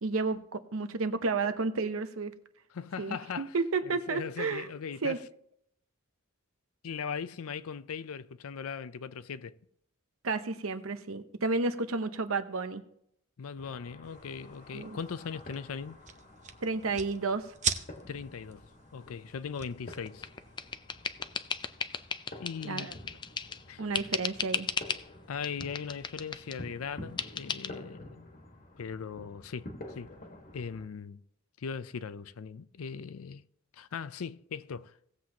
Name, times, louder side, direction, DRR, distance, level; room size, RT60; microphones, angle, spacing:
voice 1, 0.0-2.3 3.0-4.7 5.0-5.2 10.2-12.8 14.7-15.0 16.6-17.5 22.6-22.9 23.8-24.7, right 3 dB, 70° right, 0.8 m, -31 dB
voice 2, 2.7-3.5 3.8-5.2 6.8-9.6 13.4-16.0 18.1-18.7 18.9-20.3 22.4-22.9 23.7-23.9 25.3-28.3 28.8-29.7 29.9-30.1 30.5-31.2 31.6-33.4 33.7-35.2, left 6 dB, 85° left, 0.5 m, -39 dB
sound 1, 13.6-30.9, left 1 dB, 40° left, 1.5 m, -50 dB
sound 2, 14.0-20.7, right 7 dB, 35° right, 0.7 m, -41 dB
sound 3, 19.9-23.6 23.9-25.1 25.4-26.6 27.2-27.7, left 6 dB, 20° left, 0.4 m, -36 dB
18.0 x 7.7 x 2.9 m
head